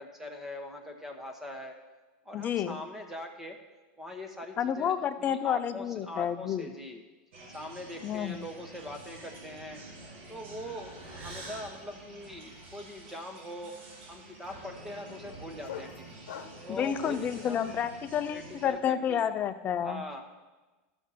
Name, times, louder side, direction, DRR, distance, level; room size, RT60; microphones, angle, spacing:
voice 1, 0.0-1.8 2.2-3.6 4.0-7.0 7.5-9.8 10.3-13.7 14.1-16.2 16.6-17.8 18.3-19.3 19.8-20.2, left 1 dB, 5° right, 4 dB, 1.1 m, -42 dB
voice 2, 2.3-2.8 4.6-6.7 8.0-8.5 16.8-20.0, left 9 dB, 30° left, 11 dB, 0.4 m, -30 dB
sound 1, 7.3-18.7, right 2 dB, 75° right, 2.1 m, -48 dB
sound 2, 10.6-10.9 11.2-17.4, left 9 dB, 90° left, 0.8 m, -48 dB
13.5 x 6.2 x 4.2 m, 1.2 s
supercardioid pair, 140°, 6 cm